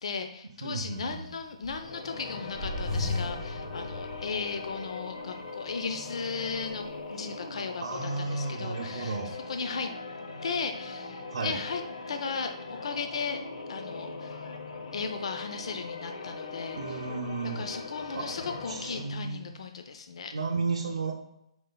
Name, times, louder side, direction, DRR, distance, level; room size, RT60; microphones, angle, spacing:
voice 1, 0.0-9.2 9.5-9.9 10.4-11.8 12.1-13.4 13.7-14.4 14.9-17.0 17.6-20.3, left 5 dB, 60° left, 6 dB, 0.5 m, -36 dB
voice 2, 0.6-1.3 7.8-9.4 11.3-11.6 16.8-17.7 18.1-18.3 18.7-19.4 20.3-21.1, right 4 dB, 70° right, -2 dB, 0.7 m, -33 dB
sound 1, 0.9-2.1 2.5-4.9 5.3-5.4 6.1-6.9, left 2 dB, 10° left, 1.0 m, -36 dB
sound 2, 1.7-19.2, left 3 dB, 85° left, 0.8 m, -40 dB
5.3 x 4.3 x 2.2 m, 0.81 s
hypercardioid pair, 165°, 3 cm